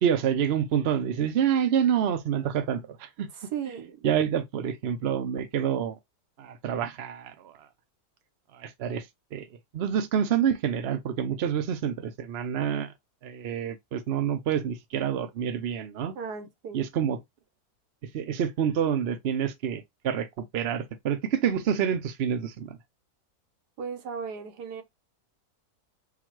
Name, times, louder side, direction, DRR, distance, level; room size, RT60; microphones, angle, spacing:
voice 1, 0.0-3.3 4.0-6.0 6.4-7.5 8.5-9.0 9.3-9.4 9.7-12.9 13.2-16.1 16.7-17.2 18.1-20.3 20.5-22.8, right 8 dB, 50° right, 0.8 m, -27 dB
voice 2, 3.4-4.0 16.1-16.8 23.8-24.8, right 7 dB, 85° right, 1.5 m, -36 dB
3.9 x 2.4 x 4.6 m
omnidirectional pair, 1.7 m